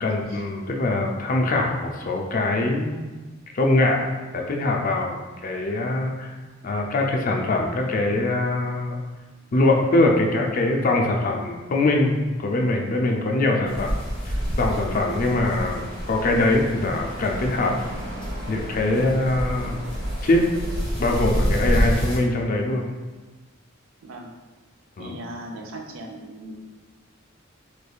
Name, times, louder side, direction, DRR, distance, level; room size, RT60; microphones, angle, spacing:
voice 1, 0.0-3.0 3.5-5.2 5.4-6.3 6.6-9.0 9.5-13.9 14.6-17.7 18.5-19.8 20.2-20.5 21.0-22.9 25.0-25.1, left 2 dB, 40° left, 1 dB, 0.4 m, -22 dB
sound 1, 13.6-22.2, equal, 5° left, 1.2 m, -28 dB
voice 2, 25.0-26.6, right 1 dB, 80° right, 1 dB, 0.5 m, -38 dB
3.3 x 3.2 x 2.3 m, 1.2 s
head